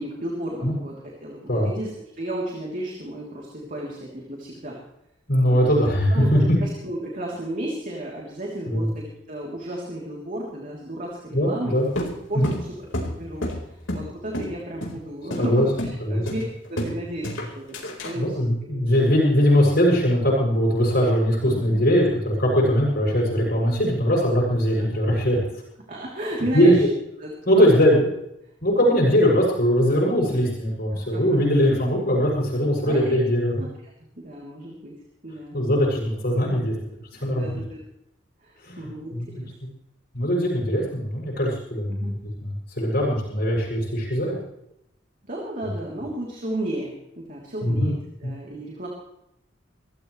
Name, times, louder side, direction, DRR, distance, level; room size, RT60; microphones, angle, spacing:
voice 1, 0.0-4.8 5.5-5.7 6.1-11.8 12.3-12.9 13.2-16.4 16.7-17.8 18.0-19.0 21.5-21.8 24.8-24.9 25.9-26.8 27.2-27.6 28.7-28.9 30.9-31.4 32.8-33.2 33.6-33.7 34.2-34.9 35.2-35.6 37.3-37.8 38.4-39.5 41.9-42.1 45.2-48.9, right 1 dB, 45° right, -3 dB, 3.3 m, -33 dB
voice 2, 5.3-6.4 8.7-8.9 11.3-11.9 12.3-12.5 15.4-15.7 16.0-16.2 18.1-25.5 26.5-26.7 27.4-28.1 28.6-33.5 35.5-36.7 37.1-37.6 38.6-39.3 40.1-42.0 42.7-44.4 47.6-47.9 48.2-48.3, equal, 55° left, -4 dB, 6.7 m, -21 dB
sound 1, 12.0-14.1 14.3-14.5 14.8-15.0 15.3-15.5 15.8-16.0 16.3-17.0 17.2-18.2, equal, 80° left, 4.4 m, -29 dB
24.5 x 15.0 x 3.3 m, 0.82 s
head